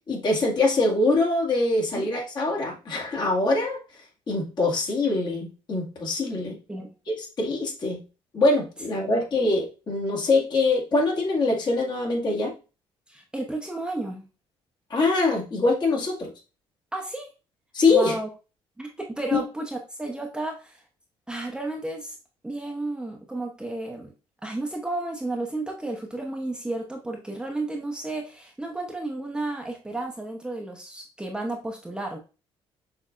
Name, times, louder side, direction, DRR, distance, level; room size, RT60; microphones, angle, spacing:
voice 1, 0.1-6.6 7.1-8.0 8.3-12.5 14.9-16.3 17.7-18.2 19.3-19.4, left 3 dB, 45° left, -2 dB, 2.0 m, -24 dB
voice 2, 13.1-14.2 16.9-17.3 17.9-18.3 18.8-20.8 21.3-22.2 22.4-24.1 24.4-32.2, right 2 dB, 10° right, 1 dB, 0.9 m, -32 dB
6.3 x 3.4 x 2.5 m, 0.32 s
cardioid pair, 105°, 11 cm